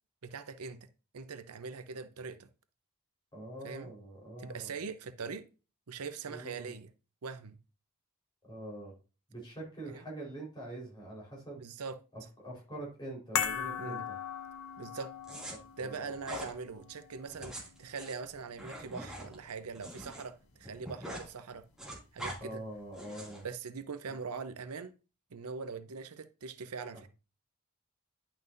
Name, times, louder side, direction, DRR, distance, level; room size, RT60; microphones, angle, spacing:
voice 1, 0.2-0.8 1.1-2.5 3.6-3.9 4.4-5.4 5.9-6.9 7.2-7.6 9.9-10.0 11.6-12.0 13.8-14.0 14.8-15.1 15.8-21.6 22.1-22.6 23.4-24.9 25.3-27.1, right 5 dB, 85° right, 0.7 m, -42 dB
voice 2, 3.3-4.7 6.2-6.7 8.4-8.9 9.3-11.6 12.1-14.2 15.8-16.1 22.4-23.4 26.9-27.0, right 1 dB, 20° left, 4.0 m, -44 dB
sound 1, 13.4-19.8 20.0-20.2, left 8 dB, 65° left, 0.7 m, -40 dB
sound 2, 15.2-15.5 16.2-16.5 17.3-20.2 20.5-21.3 21.6-22.4 22.9-23.4, equal, 5° right, 2.3 m, -43 dB
10.5 x 5.9 x 2.6 m
head